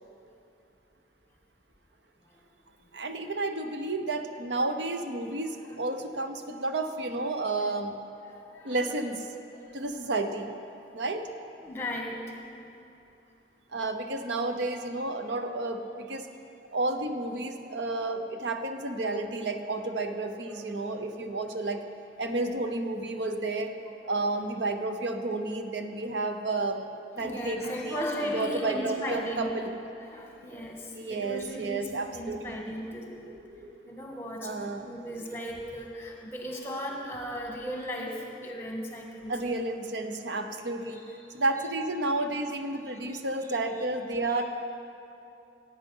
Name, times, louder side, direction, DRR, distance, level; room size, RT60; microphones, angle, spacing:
voice 1, 2.9-8.0 8.6-9.2 9.7-10.5 10.9-11.3 13.7-16.3 16.7-21.8 22.2-23.8 24.1-26.8 27.1-27.9 28.3-29.7 30.9-32.6 34.4-34.9 39.3-41.1 41.3-44.4, right 2 dB, 85° right, 6 dB, 0.8 m, -31 dB
voice 2, 8.2-8.8 9.5-9.8 10.9-11.0 11.6-12.4 20.4-21.1 24.0-24.2 27.2-29.7 30.0-39.6 40.9-41.0 43.1-43.6 44.3-44.4, equal, 15° left, 0 dB, 1.5 m, -37 dB
16.5 x 8.9 x 5.5 m, 2.7 s
head